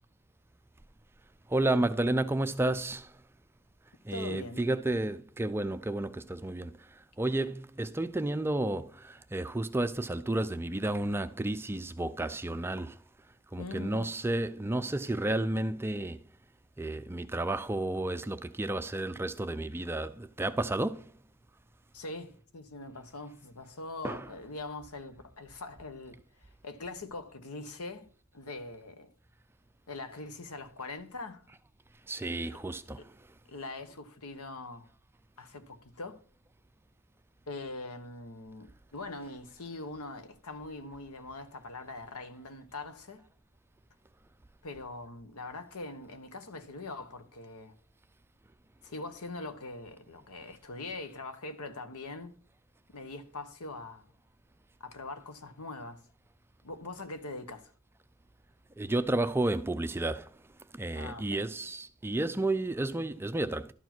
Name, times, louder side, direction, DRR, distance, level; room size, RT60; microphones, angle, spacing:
voice 1, 1.5-3.2 4.0-13.0 13.5-16.2 16.8-21.1 24.0-24.3 32.1-33.1 58.8-60.4 60.7-63.7, right 2 dB, 10° right, 0.3 m, -32 dB
voice 2, 4.1-4.7 13.6-14.1 21.9-29.1 29.9-31.4 32.5-32.6 33.0-33.1 33.5-34.9 35.4-36.2 37.5-43.2 44.6-47.7 48.8-52.4 52.9-54.1 54.8-56.1 56.6-57.7 60.9-61.5, left 2 dB, 85° left, 1.2 m, -42 dB
12.0 x 4.7 x 6.0 m
head